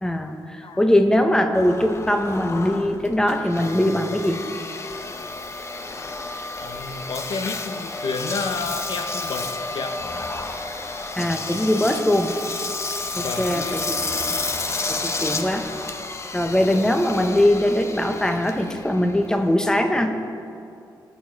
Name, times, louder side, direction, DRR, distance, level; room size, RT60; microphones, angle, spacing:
voice 1, 0.0-4.4 11.2-12.3 13.1-13.8 14.2-14.4 14.9-15.7 16.3-20.1, left 1 dB, 10° left, 5 dB, 0.9 m, -21 dB
Engine, 1.5-20.0, left 3 dB, 35° left, 0.8 m, -31 dB
voice 2, 6.6-10.0 13.2-13.8 16.7-16.9, left 4 dB, 70° left, 6 dB, 0.9 m, -31 dB
18.5 x 6.9 x 4.6 m, 2.5 s
cardioid pair, 100°, 8 cm